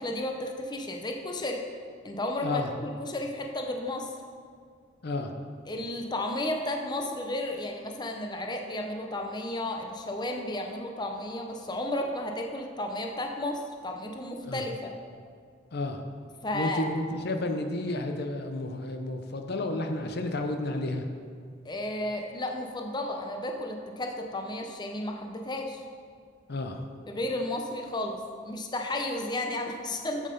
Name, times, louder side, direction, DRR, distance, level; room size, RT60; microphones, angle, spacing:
voice 1, 0.0-1.6 2.0-4.1 5.7-14.9 16.4-16.8 21.6-25.8 27.1-30.3, left 1 dB, 25° left, 3 dB, 0.7 m, -33 dB
voice 2, 5.0-5.3 14.5-14.6 15.7-16.0 16.5-21.1 26.5-26.8, left 2 dB, 55° left, 5 dB, 0.7 m, -31 dB
7.7 x 7.3 x 5.2 m, 2.1 s
head